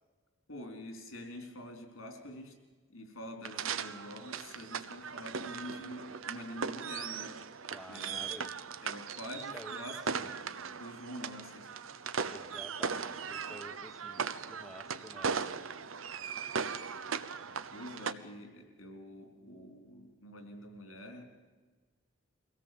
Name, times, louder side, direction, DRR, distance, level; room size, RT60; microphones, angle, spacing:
voice 1, 0.5-2.5 2.9-7.3 7.9-8.3 8.8-11.8 17.5-21.3, left 1 dB, 90° left, 4 dB, 4.1 m, -46 dB
sound 1, 3.4-18.1, right 6 dB, 85° right, 0.9 m, -38 dB
voice 2, 7.7-8.5 9.5-10.3 12.3-15.6, equal, ahead, 5 dB, 0.9 m, -51 dB
23.0 x 17.0 x 7.7 m, 1.3 s
head